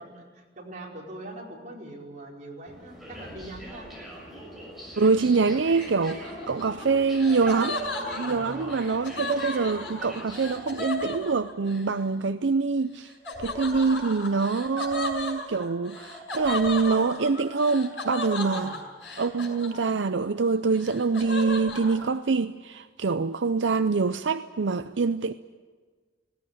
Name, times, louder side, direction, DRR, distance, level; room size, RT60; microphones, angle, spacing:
voice 1, 0.0-3.9 8.2-8.7 18.4-18.8, right 1 dB, 45° right, 5.1 m, -42 dB
sound 1, 2.7-11.3, right 1 dB, ahead, 6.5 m, -43 dB
voice 2, 5.0-7.8 8.2-13.1 13.4-18.7 19.2-25.3, right 4 dB, 80° right, 0.6 m, -25 dB
Laughter, 5.8-11.8 13.2-20.2 20.5-22.0, left 2 dB, 85° left, 6.6 m, -35 dB
19.5 x 17.5 x 10.0 m
head